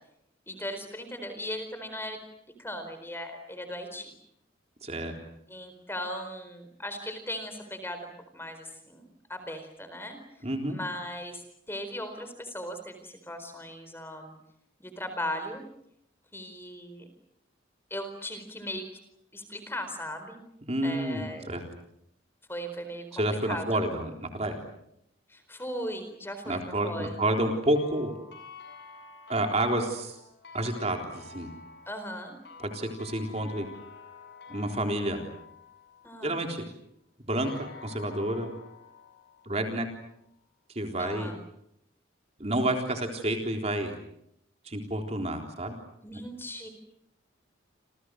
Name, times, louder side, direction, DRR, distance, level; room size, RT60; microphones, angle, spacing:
voice 1, 0.5-2.2 2.6-4.1 5.5-10.2 10.7-14.4 14.8-15.6 16.3-17.1 17.9-18.9 19.3-20.4 20.8-21.6 22.5-23.8 25.3-27.2 31.9-32.3 36.0-36.4 41.0-41.4 46.0-46.7, equal, 10° left, 8 dB, 4.3 m, -38 dB
voice 2, 4.8-5.2 10.4-10.8 20.6-21.6 23.1-24.6 26.5-28.1 29.3-30.2 30.5-31.5 32.6-33.7 34.5-35.2 36.2-36.6 37.3-38.5 39.5-39.8 40.7-41.3 42.4-43.9 44.7-45.7, right 1 dB, 30° right, 3 dB, 3.8 m, -29 dB
sound 1, 27.3-36.5 37.3-40.2, left 5 dB, 55° left, 7.9 m, -49 dB
30.0 x 28.0 x 6.5 m, 0.76 s
head